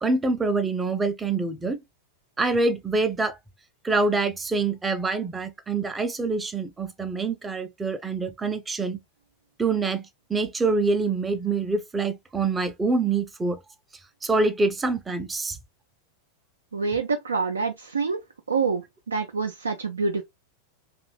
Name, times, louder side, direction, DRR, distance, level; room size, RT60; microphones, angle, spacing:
voice 1, 0.0-1.8 2.4-3.4 3.8-9.0 9.6-10.0 10.3-13.6 14.2-15.6, right 3 dB, 15° right, 0.5 m, -25 dB
voice 2, 16.7-18.2 18.5-20.2, right 4 dB, 75° right, 0.4 m, -26 dB
2.6 x 2.3 x 3.1 m
figure-of-eight pair, 90°, 0 cm